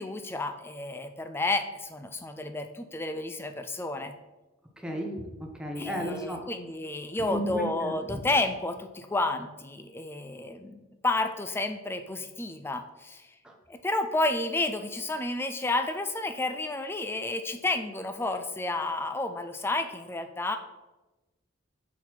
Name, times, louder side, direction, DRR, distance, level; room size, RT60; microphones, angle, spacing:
voice 1, 0.0-4.1 5.8-13.3 13.7-20.6, left 2 dB, 10° left, 7 dB, 0.3 m, -31 dB
voice 2, 4.8-6.5 7.2-8.2 13.4-13.5, equal, 5° right, 1 dB, 0.8 m, -34 dB
6.3 x 4.0 x 4.3 m, 1.1 s
head